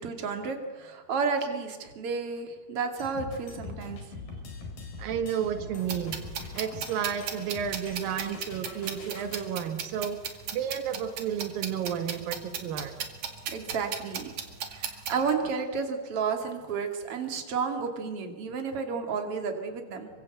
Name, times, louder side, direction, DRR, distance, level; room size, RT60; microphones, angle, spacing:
voice 1, 0.0-4.0 13.5-14.3 14.7-20.1, right 5 dB, 45° right, 4 dB, 3.2 m, -31 dB
sound 1, 3.0-9.5, left 3 dB, 80° left, 6.1 m, -43 dB
voice 2, 5.0-6.2 6.5-12.9, right 8 dB, 85° right, 8 dB, 3.2 m, -32 dB
sound 2, 5.9-15.3, right 7 dB, 60° right, 3.5 m, -37 dB
26.5 x 24.5 x 8.0 m, 1.4 s
omnidirectional pair, 3.9 m